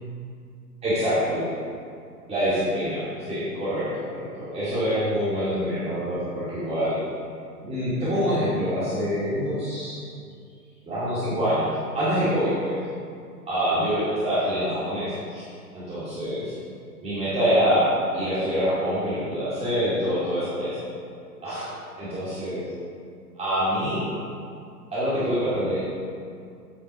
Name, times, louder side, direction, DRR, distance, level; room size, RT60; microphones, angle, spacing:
voice 1, 0.8-1.4 2.3-7.0 7.6-10.0 10.9-12.8 13.4-15.4 15.7-16.5 17.0-20.8 21.4-21.7 22.0-22.6 23.3-24.1 24.9-25.8, equal, 15° right, -12 dB, 2.2 m, -25 dB
8.9 x 5.0 x 5.1 m, 2.3 s
hypercardioid pair, 130°, 47 cm